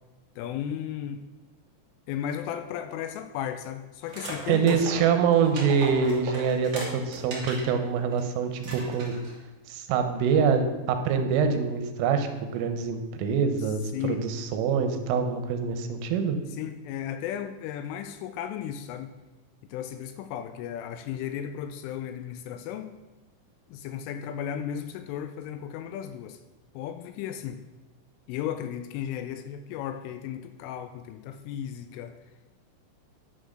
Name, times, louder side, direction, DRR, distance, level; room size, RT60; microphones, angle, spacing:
voice 1, 0.4-1.2 2.1-5.2 13.9-14.2 16.5-19.1 19.7-22.9 23.7-26.4 26.7-27.6 28.3-32.2, left 9 dB, 85° left, 8 dB, 2.9 m, -35 dB
sound 1, 4.1-7.7 8.1-8.2 8.6-9.4, right 1 dB, 40° right, 1.7 m, -37 dB
voice 2, 4.5-9.1 9.7-16.4, right 6 dB, 80° right, 7 dB, 3.3 m, -25 dB
10.0 x 6.2 x 6.3 m, 1.1 s
omnidirectional pair, 5.9 m